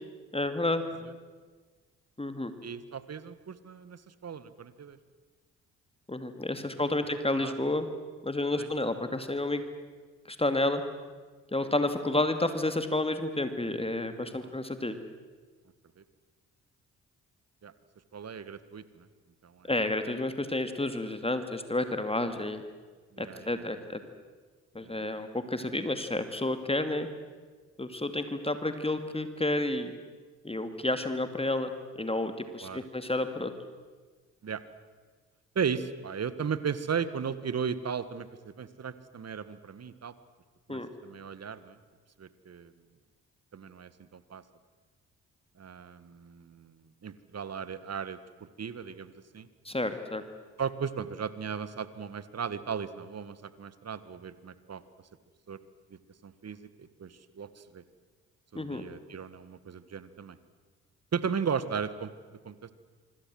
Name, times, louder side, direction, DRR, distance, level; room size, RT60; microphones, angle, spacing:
voice 1, 0.3-0.8 2.2-2.5 6.1-7.9 8.2-9.6 10.3-10.8 11.5-14.9 19.7-22.6 23.2-24.0 24.7-27.1 27.8-29.9 30.4-31.7 32.0-33.5 40.7-40.9 49.6-50.2 58.5-58.8, left 2 dB, 15° left, 9 dB, 2.5 m, -30 dB
voice 2, 2.6-5.0 7.4-7.5 8.6-8.7 14.4-14.5 16.0-16.1 17.6-17.7 18.1-19.1 19.4-19.7 23.1-23.8 24.8-25.1 32.6-32.9 34.4-34.6 35.6-40.1 40.7-41.8 42.2-42.7 43.5-44.4 45.6-49.5 50.6-54.8 55.5-55.6 55.9-57.8 58.5-60.4 61.1-62.1 62.4-62.7, right 6 dB, 45° right, 14 dB, 1.8 m, -36 dB
26.0 x 25.5 x 7.9 m, 1.4 s
hypercardioid pair, 40°, 37 cm